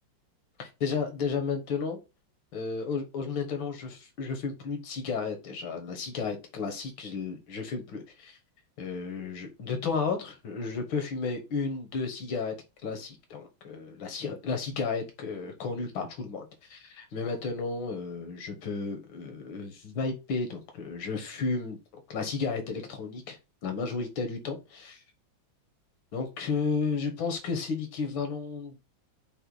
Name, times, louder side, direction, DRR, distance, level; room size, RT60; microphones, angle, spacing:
voice 1, 0.6-2.0 2.5-8.4 8.8-12.6 12.8-21.8 22.1-23.4 23.6-25.0 26.1-28.8, left 4 dB, 85° left, 1.8 m, -33 dB
5.3 x 2.2 x 4.6 m
omnidirectional pair, 2.2 m